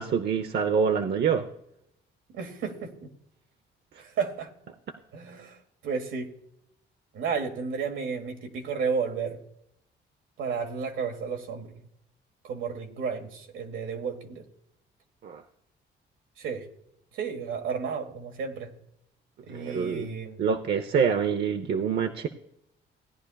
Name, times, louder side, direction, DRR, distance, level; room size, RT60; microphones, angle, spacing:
voice 1, 0.0-1.4 15.2-15.4 19.5-20.1 20.4-22.3, right 6 dB, 55° right, 5 dB, 0.7 m, -26 dB
voice 2, 2.3-3.1 4.0-4.5 5.1-6.3 7.1-9.4 10.4-11.9 12.4-14.4 16.4-16.6 17.1-18.7 19.4-20.4, right 5 dB, 80° right, 4 dB, 1.6 m, -32 dB
17.0 x 10.0 x 2.3 m, 0.76 s
cardioid pair, 90°, 20 cm